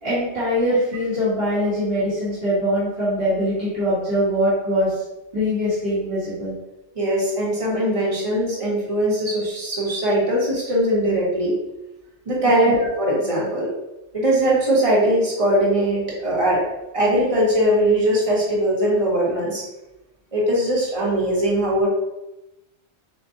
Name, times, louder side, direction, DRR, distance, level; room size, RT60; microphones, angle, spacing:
voice 1, 0.0-4.9 5.3-6.5 12.4-12.6, equal, 60° right, -12 dB, 2.0 m, -22 dB
voice 2, 6.9-11.5 12.2-13.7 14.1-16.6 16.9-19.6 20.3-21.9, right 1 dB, 30° right, -5 dB, 1.4 m, -20 dB
6.8 x 2.5 x 2.7 m, 0.96 s
omnidirectional pair, 1.2 m